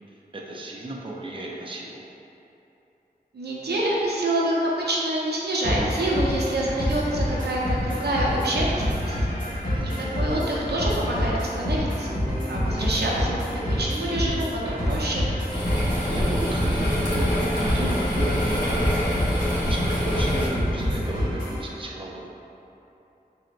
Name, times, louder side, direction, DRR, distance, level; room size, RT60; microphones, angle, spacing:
voice 1, 0.3-2.0 9.7-10.2 16.1-19.1 19.6-22.3, right 2 dB, 30° right, -3 dB, 0.5 m, -34 dB
voice 2, 3.3-9.2 9.8-9.9 10.2-15.2, right 1 dB, 85° right, -4 dB, 0.6 m, -27 dB
sound 1, 5.6-21.6, equal, 55° left, 1.4 m, -27 dB
sound 2, 15.5-20.5, equal, 30° left, 1.5 m, -26 dB
5.8 x 2.1 x 2.6 m, 3.0 s
wide cardioid pair, 50°, 17 cm